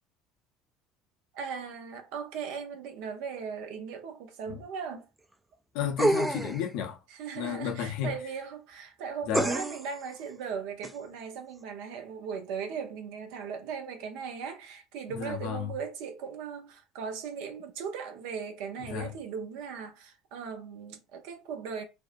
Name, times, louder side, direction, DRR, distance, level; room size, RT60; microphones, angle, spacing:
voice 1, 1.3-5.1 7.1-21.8, right 6 dB, 70° right, 0.6 m, -38 dB
voice 2, 5.7-7.0 7.4-8.1 9.3-9.5 15.1-15.7 18.8-19.1, left 9 dB, 70° left, 0.6 m, -32 dB
sound 1, 6.0-6.7 9.3-9.9 10.8-10.9, right 2 dB, 15° right, 0.3 m, -27 dB
2.5 x 2.1 x 2.5 m
hypercardioid pair, 80°, 0 cm